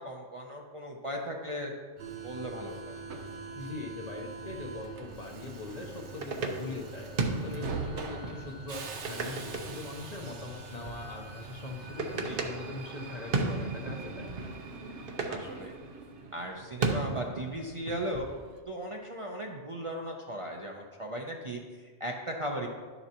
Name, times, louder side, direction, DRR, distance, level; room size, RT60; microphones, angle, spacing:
voice 1, 0.0-1.7 2.2-3.0 12.3-12.4 15.3-15.7 16.3-18.3 18.7-22.7, right 1 dB, 35° right, 0 dB, 0.7 m, -37 dB
Subway metro underground, 2.0-16.3, right 3 dB, 80° right, 1.1 m, -43 dB
voice 2, 3.5-7.1 7.4-14.3, left 3 dB, 40° left, 1 dB, 0.9 m, -41 dB
sound 1, 4.5-18.6, right 3 dB, 55° right, 1.0 m, -37 dB
11.5 x 6.8 x 2.9 m, 1.5 s
omnidirectional pair, 1.2 m